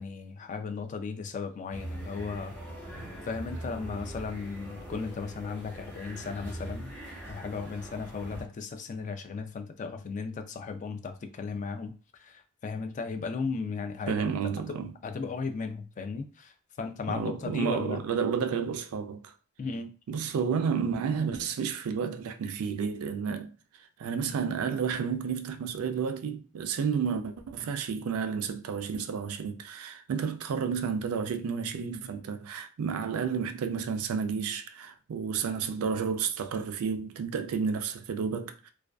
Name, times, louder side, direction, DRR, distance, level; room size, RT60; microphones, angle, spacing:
voice 1, 0.0-2.6 2.9-6.9 7.3-14.3 15.0-18.0 19.6-19.9, left 4 dB, 35° left, 0.3 m, -36 dB
sound 1, 1.7-8.4, right 1 dB, 10° left, 1.0 m, -42 dB
voice 2, 14.1-14.9 17.1-19.3 20.1-23.5 24.0-38.7, right 6 dB, 85° right, 0.4 m, -31 dB
2.4 x 2.2 x 2.2 m
head